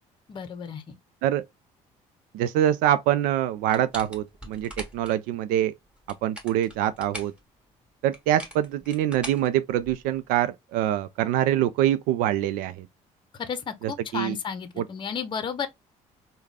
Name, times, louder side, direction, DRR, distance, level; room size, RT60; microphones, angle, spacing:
voice 1, 0.3-1.0 13.4-15.7, left 6 dB, 35° left, 0.7 m, -33 dB
voice 2, 2.3-5.7 6.2-7.3 8.0-12.9 13.8-14.4 14.8-14.9, right 12 dB, 85° right, 0.4 m, -25 dB
sound 1, 3.7-5.2 5.9-7.4 8.1-10.1, equal, 10° right, 1.9 m, -41 dB
3.5 x 2.3 x 3.3 m
supercardioid pair, 90°, 14 cm